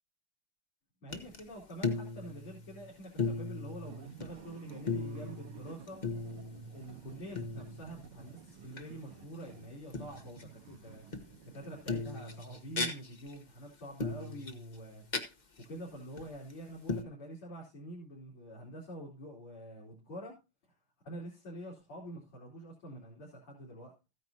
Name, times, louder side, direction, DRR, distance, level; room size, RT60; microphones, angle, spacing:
voice 1, 1.0-6.0 6.5-11.1 11.4-15.0 15.7-20.4 21.0-23.9, right 1 dB, 75° left, -5 dB, 4.3 m, -46 dB
sound 1, 1.1-1.4 1.7-2.9 3.2-4.4 4.7-6.8 7.4-8.1 8.7-8.9 9.9-10.6 11.1-11.6 11.9-13.3 14.0-15.2 15.6-15.7 16.2-16.5 16.9-17.0, left 3 dB, 30° left, 0.9 m, -37 dB
sound 2, 3.8-12.4, right 7 dB, 80° right, 1.9 m, -53 dB
15.0 x 9.4 x 2.8 m, 0.28 s
omnidirectional pair, 2.4 m